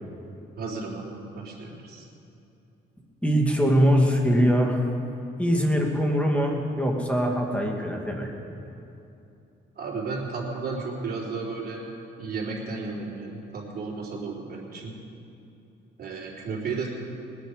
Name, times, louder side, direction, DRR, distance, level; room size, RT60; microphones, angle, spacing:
voice 1, 0.6-2.1 9.8-11.8 12.2-14.9 16.0-16.9, right 4 dB, 50° right, -4 dB, 3.7 m, -33 dB
voice 2, 3.2-4.9 5.4-8.3, equal, 5° left, 0 dB, 2.3 m, -22 dB
20.5 x 10.0 x 5.1 m, 2.8 s
cardioid pair, 90°, 20 cm